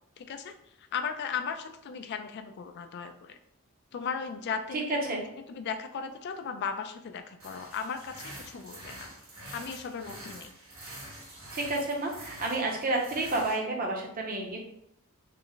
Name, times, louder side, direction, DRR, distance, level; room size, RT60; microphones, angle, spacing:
voice 1, 0.2-3.4 3.9-5.2 5.5-9.1 9.5-10.5, left 6 dB, 50° left, 8 dB, 0.3 m, -37 dB
voice 2, 4.9-5.2 11.5-14.6, right 2 dB, 40° right, 1 dB, 0.6 m, -30 dB
sound 1, 7.4-13.6, right 1 dB, 70° right, 1.5 m, -46 dB
3.3 x 2.0 x 3.8 m, 0.78 s
head